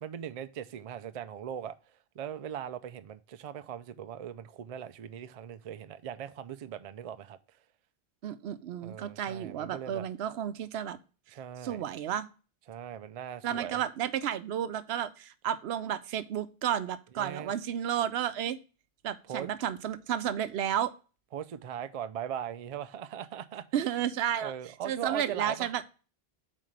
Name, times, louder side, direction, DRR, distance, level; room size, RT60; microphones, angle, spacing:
voice 1, 0.0-1.7 2.1-7.4 8.8-10.1 11.3-11.8 12.7-13.8 17.2-17.5 19.2-19.5 21.3-23.6 24.4-25.7, right 9 dB, 55° right, 0.4 m, -39 dB
voice 2, 8.2-11.0 11.6-12.3 13.4-18.6 19.0-20.9 23.7-24.5 24.8-25.9, right 10 dB, 80° right, 0.8 m, -32 dB
7.5 x 4.2 x 3.2 m
omnidirectional pair, 1.1 m